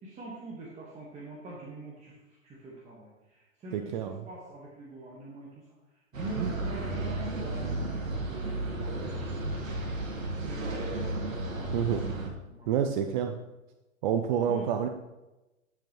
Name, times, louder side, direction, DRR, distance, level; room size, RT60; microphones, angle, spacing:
voice 1, 0.0-3.9 4.2-5.7 6.1-9.7 10.4-11.0 12.5-12.7 14.4-14.7, right 1 dB, 15° right, -5 dB, 1.6 m, -44 dB
voice 2, 3.7-4.2 6.4-6.5 11.7-12.0 12.7-13.3 14.0-14.9, right 8 dB, 35° right, 7 dB, 0.5 m, -28 dB
sound 1, 6.1-12.3, right 2 dB, 80° right, 1.8 m, -33 dB
10.5 x 7.1 x 3.2 m, 1.0 s
hypercardioid pair, 125°, 40 cm